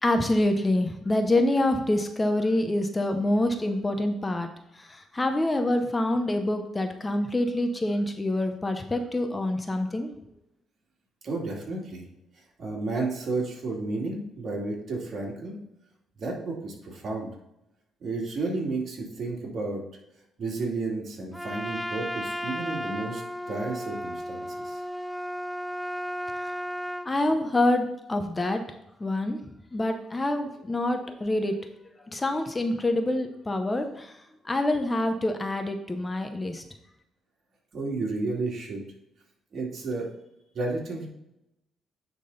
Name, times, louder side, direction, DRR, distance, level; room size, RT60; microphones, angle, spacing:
voice 1, 0.0-4.5 4.7-10.1 26.4-26.5 27.0-28.6 29.0-29.4 29.7-31.6 32.1-34.2 34.4-36.6, left 1 dB, 20° left, 6 dB, 0.8 m, -26 dB
voice 2, 11.2-12.1 12.6-15.6 16.2-17.3 18.0-19.8 20.4-23.2 23.5-24.8 37.7-38.8 39.5-40.1 40.5-41.1, right 3 dB, 55° right, -1 dB, 2.4 m, -32 dB
Trumpet, 21.3-27.1, equal, ahead, 0.4 m, -34 dB
9.9 x 3.8 x 4.0 m, 0.86 s
cardioid pair, 90°, 0 cm